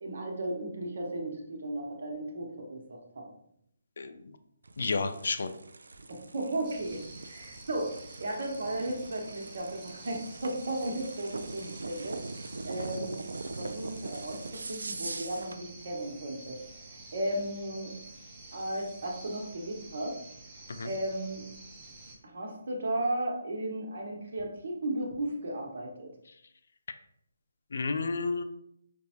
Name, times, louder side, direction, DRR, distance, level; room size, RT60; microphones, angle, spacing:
voice 1, 0.0-3.3 6.1-12.3 12.6-13.2 13.6-17.9 18.5-20.2 20.8-21.4 22.2-26.1, right 1 dB, 60° right, 0 dB, 0.9 m, -35 dB
sound 1, 4.6-15.6, right 3 dB, 85° right, 0.3 m, -42 dB
voice 2, 4.8-5.5 20.7-20.9 27.7-28.4, left 4 dB, 65° left, 10 dB, 0.4 m, -31 dB
sound 2, 6.6-22.2, right 2 dB, 20° right, 0.7 m, -50 dB
5.1 x 2.0 x 2.9 m, 0.73 s
hypercardioid pair, 165°, 0 cm